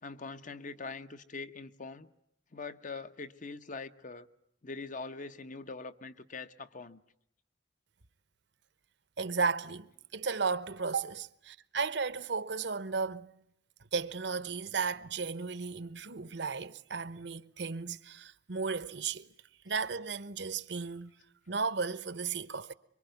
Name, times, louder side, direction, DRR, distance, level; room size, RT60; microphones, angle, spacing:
voice 1, 0.0-2.1 2.5-4.3 4.6-7.0, left 4 dB, 45° left, 1.0 m, -43 dB
voice 2, 9.2-13.3 13.9-19.3 19.6-21.1 21.5-22.7, right 5 dB, 65° right, 1.0 m, -34 dB
25.0 x 24.0 x 9.3 m
head